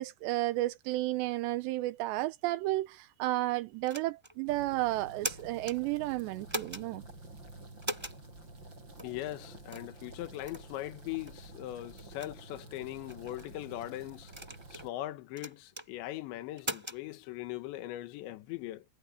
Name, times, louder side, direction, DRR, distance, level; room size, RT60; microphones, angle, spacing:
voice 1, 0.0-7.0, right 17 dB, 85° right, 2.9 m, -32 dB
sound 1, 3.9-4.3 5.0-5.8 6.5-6.8 7.8-8.2 9.0-9.1 9.7-9.9 10.5-10.7 11.3-11.4 12.0-12.3 13.1-13.5 14.3-14.9 15.4-15.9 16.6-17.0, right 1 dB, 5° right, 4.3 m, -39 dB
sound 2, 4.5-14.9, right 2 dB, 25° right, 8.2 m, -50 dB
voice 2, 9.0-14.3 14.7-18.9, left 15 dB, 85° left, 3.5 m, -40 dB
omnidirectional pair, 5.2 m